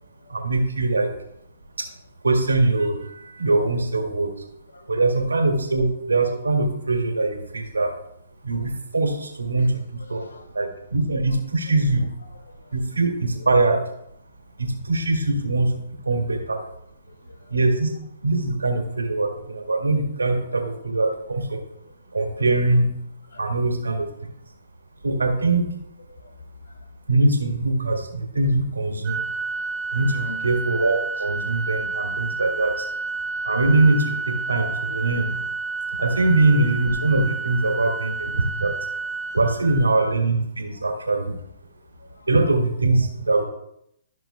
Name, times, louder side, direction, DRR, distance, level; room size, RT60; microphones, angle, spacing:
voice 1, 0.3-1.1 2.2-4.3 4.9-7.9 8.4-10.2 10.5-12.1 12.7-13.8 14.6-15.7 16.0-16.6 17.5-17.9 18.2-21.6 22.1-22.9 23.4-24.1 25.0-25.6 27.1-29.2 29.9-32.9 33.4-35.3 36.0-38.7 39.3-41.3 42.3-43.4, right 2 dB, 90° right, 2 dB, 1.8 m, -22 dB
voice 2, 9.6-10.6 12.3-12.8 13.3-13.5 16.1-16.2 17.2-17.5 23.3-23.5 26.1-26.2 30.1-30.4 42.0-42.3 43.3-43.4, left 1 dB, 80° left, 6 dB, 1.6 m, -44 dB
Organ, 29.0-40.1, right 4 dB, 20° right, 1.2 m, -30 dB
14.5 x 6.0 x 2.2 m, 0.75 s
hypercardioid pair, 130°, 0 cm